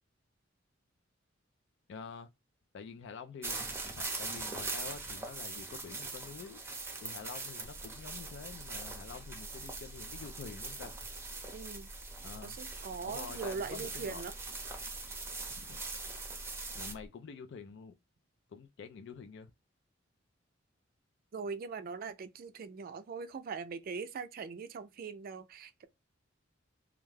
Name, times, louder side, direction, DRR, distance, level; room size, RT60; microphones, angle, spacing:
voice 1, 1.9-2.3 2.7-3.6 3.8-6.6 7.0-11.1 12.2-12.6 13.0-14.2 15.5-15.8 16.7-17.9 18.5-19.5, left 5 dB, 65° left, 0.4 m, -47 dB
sound 1, 3.4-16.9, right 3 dB, 15° right, 0.6 m, -42 dB
sound 2, 7.6-17.1, equal, 45° left, 0.7 m, -51 dB
voice 2, 11.5-11.9 12.4-14.3 21.3-25.9, right 5 dB, 50° right, 0.4 m, -41 dB
2.4 x 2.2 x 3.2 m
head